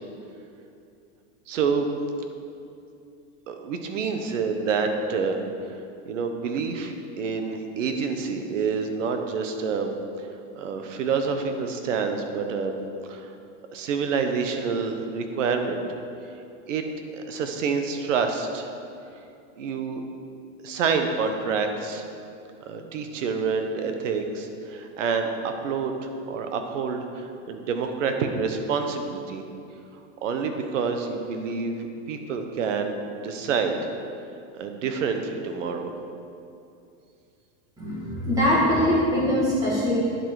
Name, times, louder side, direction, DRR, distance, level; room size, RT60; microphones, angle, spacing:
voice 1, 1.5-1.9 3.5-5.4 6.1-9.9 10.5-12.7 13.1-13.3 13.7-15.8 16.7-18.7 19.6-20.0 20.6-22.0 22.7-29.4 30.2-33.8 34.5-35.9, right 5 dB, 75° right, 6 dB, 1.2 m, -27 dB
voice 2, 37.8-40.0, left 1 dB, 10° right, -7 dB, 2.0 m, -22 dB
9.8 x 7.8 x 4.9 m, 2.6 s
supercardioid pair, 180°, 38 cm